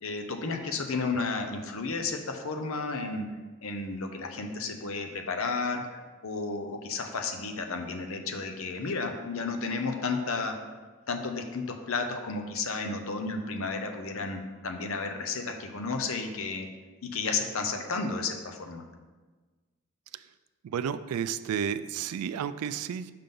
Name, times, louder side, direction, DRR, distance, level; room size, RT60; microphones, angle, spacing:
voice 1, 0.0-3.3 3.6-10.6 11.1-16.7 17.0-18.8, left 4 dB, 70° left, 5 dB, 0.7 m, -32 dB
voice 2, 20.6-23.1, right 8 dB, 85° right, 14 dB, 0.3 m, -32 dB
5.7 x 3.7 x 5.2 m, 1.3 s
head